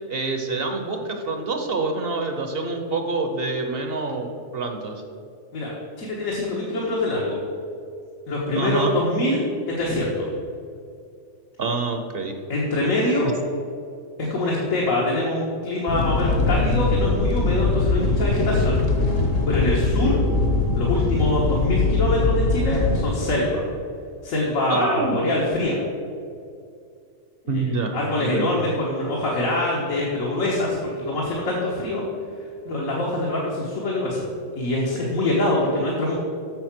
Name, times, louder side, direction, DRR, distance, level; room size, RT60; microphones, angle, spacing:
voice 1, 0.1-5.0 8.5-9.0 11.6-12.4 24.7-25.3 27.5-28.5, right 3 dB, 50° right, 5 dB, 1.0 m, -27 dB
voice 2, 5.5-7.4 8.3-10.3 12.5-13.3 14.2-18.8 19.5-20.2 20.7-23.6 24.2-25.8 27.5-27.6 27.9-32.0 32.7-34.3 34.6-36.2, left 1 dB, 75° left, -4 dB, 1.8 m, -24 dB
sound 1, 15.9-23.1, left 3 dB, 50° left, 1.2 m, -21 dB
7.9 x 6.7 x 6.0 m, 2.4 s
omnidirectional pair, 1.4 m